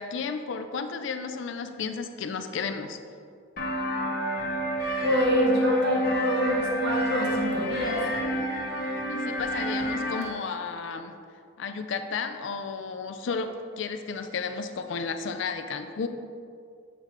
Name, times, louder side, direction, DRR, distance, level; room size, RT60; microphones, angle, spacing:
voice 1, 0.0-3.0 9.1-11.1 11.6-13.5 13.8-16.1, left 5 dB, 60° left, 7 dB, 0.4 m, -33 dB
sound 1, 3.6-10.2, equal, 45° left, 0.9 m, -29 dB
voice 2, 5.0-8.0, equal, 50° right, -2 dB, 1.1 m, -26 dB
7.4 x 5.0 x 3.1 m, 2.3 s
head